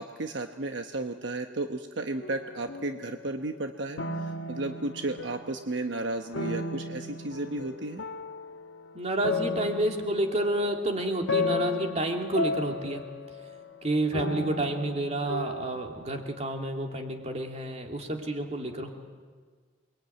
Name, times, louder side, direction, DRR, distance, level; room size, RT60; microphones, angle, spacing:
voice 1, 0.0-8.0, right 2 dB, 70° right, 6 dB, 1.0 m, -34 dB
sound 1, 2.2-3.7 4.0-5.8 6.3-16.2, left 3 dB, 85° left, 1.3 m, -35 dB
voice 2, 8.9-13.0 13.8-18.9, right 1 dB, 35° right, 2 dB, 2.9 m, -29 dB
28.5 x 21.5 x 9.3 m, 1.5 s
head